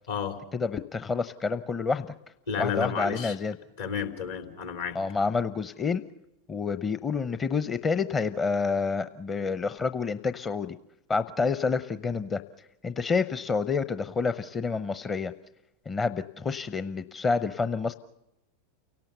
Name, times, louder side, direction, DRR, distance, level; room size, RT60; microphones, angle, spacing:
voice 1, 0.5-2.1 2.6-3.6 4.9-6.0 6.5-10.8 11.1-12.4 12.8-15.3 15.9-17.9, left 4 dB, 20° left, 12 dB, 0.8 m, -28 dB
voice 2, 2.5-3.3 3.8-5.0, left 7 dB, 65° left, 4 dB, 3.5 m, -31 dB
29.5 x 18.0 x 6.8 m, 0.90 s
figure-of-eight pair, 90°, 0 cm